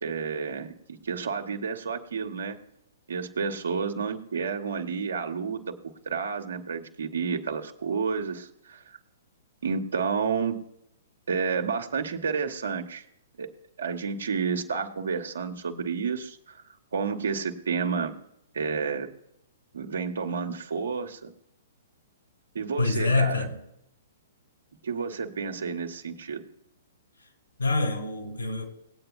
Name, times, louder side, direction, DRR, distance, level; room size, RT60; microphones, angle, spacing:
voice 1, 0.0-2.6 3.1-9.0 9.6-10.6 11.3-13.0 13.4-13.5 13.8-16.6 16.9-18.2 18.5-19.1 19.7-21.3 22.5-23.5 24.8-26.4, right 5 dB, 65° right, 1.5 m, -30 dB
voice 2, 22.8-23.6 27.6-28.6, left 3 dB, 75° left, 3.2 m, -26 dB
20.0 x 8.8 x 2.4 m
figure-of-eight pair, 115°, 0 cm